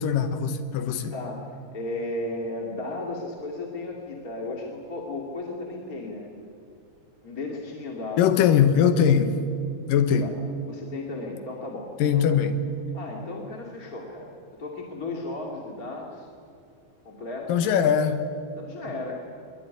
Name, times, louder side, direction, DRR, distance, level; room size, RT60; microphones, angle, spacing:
voice 1, 0.0-1.1 8.2-9.4 9.9-10.3 12.0-12.6 17.5-18.3, left 8 dB, 80° left, 2.9 m, -21 dB
voice 2, 1.1-1.4 1.7-6.3 7.2-8.7 10.2-10.3 10.6-12.3 12.9-16.3 17.0-17.5 18.6-19.4, left 2 dB, 30° left, 2.6 m, -35 dB
23.5 x 22.0 x 9.6 m
omnidirectional pair, 3.9 m